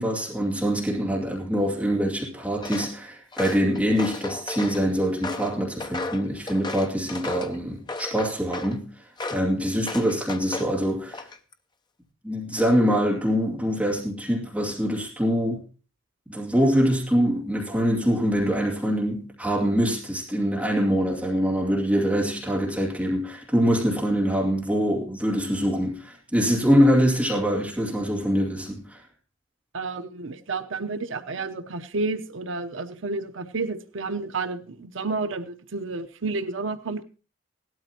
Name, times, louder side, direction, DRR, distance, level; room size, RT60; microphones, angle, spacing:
voice 1, 0.0-8.9 9.3-11.3 12.2-15.6 16.3-29.0, equal, 5° right, -3 dB, 2.5 m, -24 dB
Walk footsteps, 2.6-2.9 3.3-4.8 5.2-7.5 7.9-8.8 9.2-9.5 9.9-10.7 11.1-11.5, left 3 dB, 20° left, 0.6 m, -34 dB
voice 2, 29.7-37.0, right 3 dB, 70° right, 9 dB, 0.8 m, -31 dB
17.5 x 12.5 x 2.9 m, 0.35 s
head